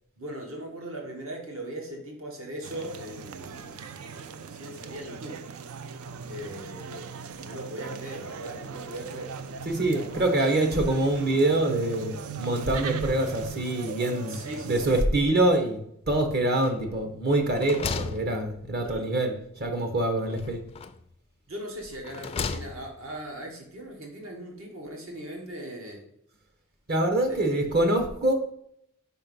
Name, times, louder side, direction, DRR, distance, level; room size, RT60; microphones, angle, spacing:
voice 1, 0.2-3.8 4.1-5.4 6.3-9.3 9.8-10.9 14.3-15.0 18.8-19.1 20.3-20.4 21.5-26.0 27.3-27.7, right 1 dB, 65° right, 1 dB, 1.4 m, -39 dB
sound 1, 2.6-15.1, right 6 dB, 80° right, 0.4 m, -39 dB
voice 2, 9.6-15.8 16.1-20.6 26.9-28.3, right 1 dB, 50° right, 5 dB, 1.1 m, -25 dB
sound 2, 16.6-17.1 17.4-19.0 20.3-21.1 21.8-23.1, left 5 dB, 30° left, 0.3 m, -36 dB
5.2 x 4.4 x 5.4 m, 0.72 s
head